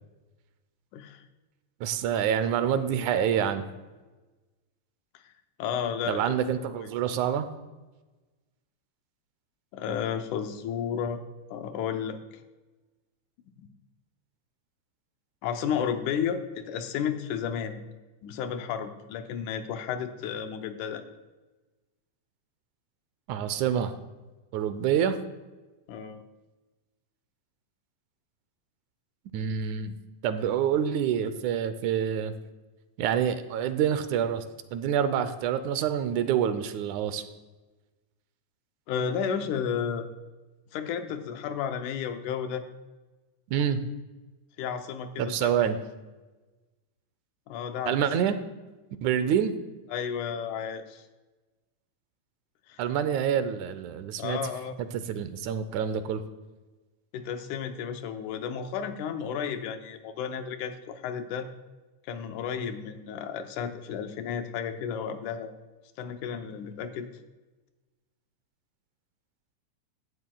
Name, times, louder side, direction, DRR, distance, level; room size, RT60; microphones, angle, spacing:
voice 1, 0.9-1.2 5.6-6.4 6.8-6.9 9.7-11.2 11.5-12.2 13.6-13.7 15.4-17.8 18.2-21.0 25.9-26.2 38.9-40.1 40.7-42.6 44.6-45.5 47.5-48.0 49.9-51.0 52.7-52.8 54.2-54.7 57.1-61.5 62.1-65.5 66.0-67.1, left 7 dB, 85° left, 7 dB, 2.3 m, -32 dB
voice 2, 1.8-3.7 6.1-7.5 23.3-23.9 24.5-25.2 29.3-30.0 30.2-32.3 33.0-34.4 34.7-37.2 43.5-43.8 45.2-45.8 47.9-48.4 49.0-49.6 52.8-54.4 54.8-56.2, right 8 dB, 80° right, 11 dB, 2.1 m, -27 dB
15.0 x 11.0 x 2.3 m, 1.2 s
omnidirectional pair, 3.4 m